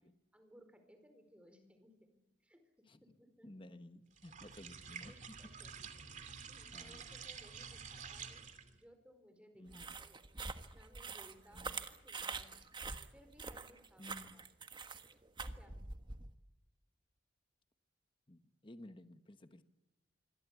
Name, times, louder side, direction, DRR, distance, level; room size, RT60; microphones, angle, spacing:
voice 1, 0.3-1.9 2.4-3.5 4.5-4.7 5.1-5.7 6.3-10.3 10.7-12.7 13.1-14.4 15.4-15.9, equal, 5° right, 7 dB, 4.5 m, -63 dB
voice 2, 3.4-5.1 6.7-7.0 9.6-10.0 11.5-11.8 14.0-14.4 18.3-19.6, left 1 dB, 25° left, 10 dB, 1.2 m, -55 dB
sound 1, 4.2-8.8, right 6 dB, 40° right, 2.5 m, -50 dB
sound 2, 9.7-16.3, right 4 dB, 25° right, 1.4 m, -45 dB
27.0 x 23.0 x 8.2 m, 0.94 s
head